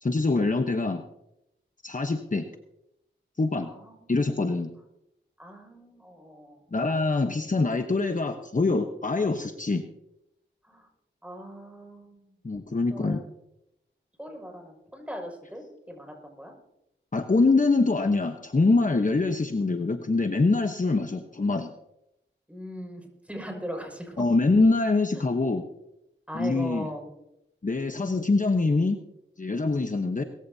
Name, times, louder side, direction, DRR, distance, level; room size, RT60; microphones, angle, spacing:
voice 1, 0.0-1.0 1.8-2.5 3.4-3.7 4.1-4.7 6.7-9.8 12.4-13.2 17.1-21.7 24.2-25.6 26.3-26.9 27.6-29.0 29.4-30.2, left 3 dB, 40° left, 5 dB, 1.1 m, -24 dB
voice 2, 3.6-3.9 5.4-6.6 10.6-10.9 11.2-12.3 12.9-13.2 14.2-16.5 22.5-24.3 25.1-25.2 26.3-27.1, equal, 5° right, 2 dB, 6.2 m, -39 dB
20.5 x 15.0 x 2.8 m, 0.84 s
cardioid pair, 45°, 20 cm